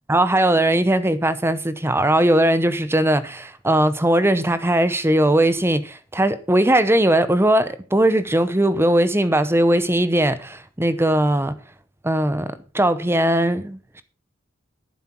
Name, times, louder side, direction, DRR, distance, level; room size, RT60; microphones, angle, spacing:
voice 1, 0.1-11.6 12.0-14.0, right 1 dB, 15° right, 0.9 m, -19 dB
11.5 x 9.8 x 4.6 m
head